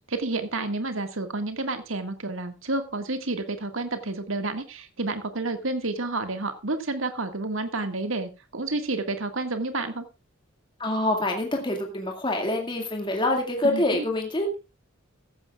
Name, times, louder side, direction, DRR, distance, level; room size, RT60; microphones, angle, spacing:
voice 1, 0.1-10.0 13.6-14.0, right 2 dB, 70° right, 7 dB, 1.9 m, -30 dB
voice 2, 10.8-14.5, left 1 dB, 25° left, 2 dB, 2.1 m, -26 dB
15.5 x 14.0 x 2.4 m, 0.29 s
head